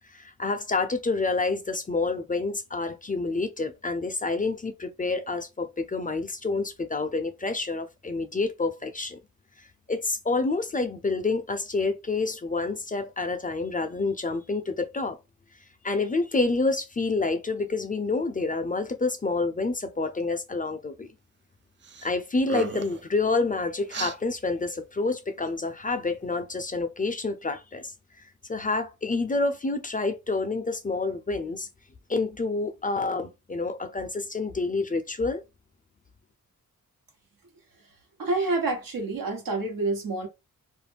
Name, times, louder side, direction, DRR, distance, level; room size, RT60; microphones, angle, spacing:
voice 1, 0.1-9.2 9.9-15.2 15.8-21.1 22.0-27.9 28.5-31.7 32.1-35.4, left 3 dB, 25° left, 0.5 m, -28 dB
sound 1, 21.8-22.1 22.4-23.0 23.9-24.2, right 4 dB, 35° right, 0.4 m, -34 dB
voice 2, 38.2-40.3, right 3 dB, 80° right, 1.2 m, -28 dB
2.5 x 2.1 x 3.2 m
cardioid pair, 70°, 34 cm